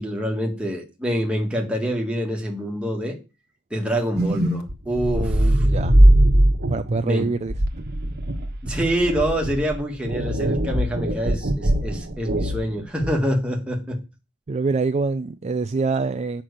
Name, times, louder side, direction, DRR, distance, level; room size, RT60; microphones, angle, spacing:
voice 1, 0.0-3.2 3.7-5.7 7.0-7.3 8.6-14.0, equal, 5° right, 1.8 m, -26 dB
sound 1, 4.2-13.3, right 1 dB, 45° right, 1.3 m, -20 dB
voice 2, 5.1-6.0 6.7-7.5 14.5-16.4, right 4 dB, 30° right, 0.4 m, -25 dB
7.6 x 5.9 x 6.6 m
head